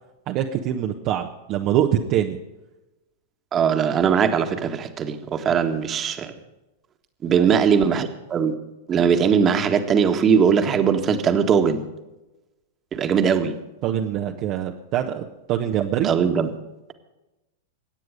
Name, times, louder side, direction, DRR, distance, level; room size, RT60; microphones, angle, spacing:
voice 1, 0.3-2.4 5.5-5.6 7.3-7.5 13.8-16.1, right 10 dB, 45° right, 2 dB, 1.2 m, -24 dB
voice 2, 3.5-6.3 7.2-8.5 8.9-11.8 12.9-13.6 16.0-16.5, right 7 dB, 30° right, 7 dB, 1.7 m, -20 dB
23.5 x 9.4 x 5.2 m, 1.0 s
figure-of-eight pair, 100°, 0 cm